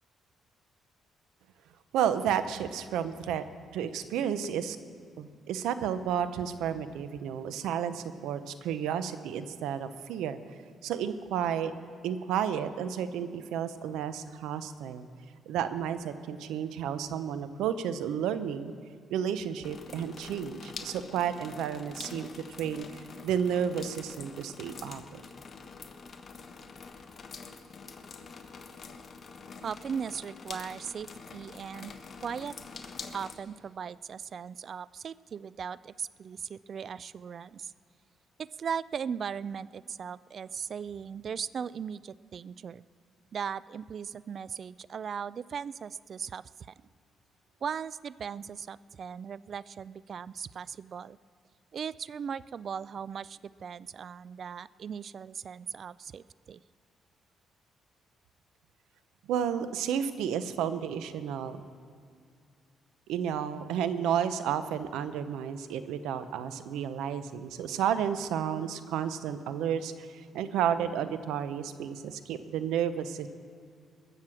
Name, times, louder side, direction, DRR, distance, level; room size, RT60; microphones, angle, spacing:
voice 1, 1.9-3.4 3.7-4.8 5.2-10.4 10.8-11.7 12.0-15.1 15.5-18.7 19.1-25.2 59.3-61.6 63.1-73.3, right 8 dB, 90° right, 12 dB, 0.7 m, -32 dB
sound 1, 19.6-33.3, left 4 dB, 45° left, 1.2 m, -46 dB
voice 2, 29.6-31.9 32.2-32.6 33.1-37.7 38.4-42.8 43.3-46.7 47.6-51.2 51.7-56.6, right 7 dB, 50° right, 19 dB, 0.3 m, -38 dB
21.0 x 7.5 x 6.3 m, 2.3 s
cardioid pair, 90°, 0 cm